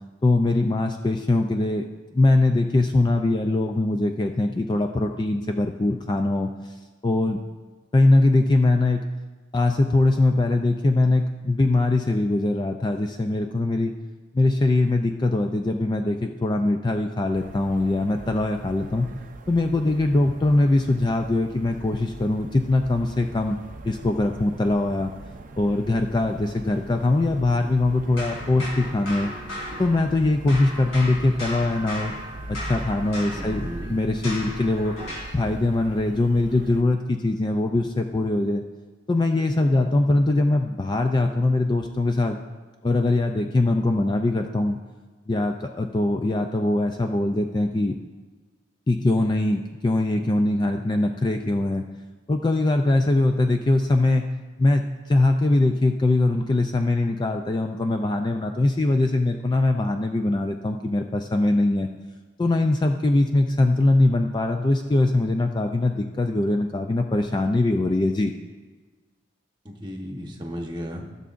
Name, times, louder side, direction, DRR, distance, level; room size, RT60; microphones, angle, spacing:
voice 1, 0.2-1.8 2.1-6.7 7.0-7.4 7.9-9.0 9.5-13.9 14.3-19.1 19.5-23.6 23.8-25.1 25.6-29.3 29.8-32.1 32.5-34.9 35.3-38.6 39.1-42.4 42.8-44.8 45.3-48.0 48.9-51.8 52.3-54.3 54.6-61.9 62.4-68.3, left 2 dB, 20° left, 5 dB, 0.3 m, -22 dB
sound 1, 17.3-36.8, right 2 dB, 40° right, 0.5 m, -41 dB
sound 2, 28.2-30.2 30.5-35.4, left 1 dB, 85° left, 3.0 m, -36 dB
voice 2, 33.3-33.9 69.6-71.1, equal, 20° right, 1 dB, 1.0 m, -34 dB
16.0 x 6.9 x 2.5 m, 1.4 s
head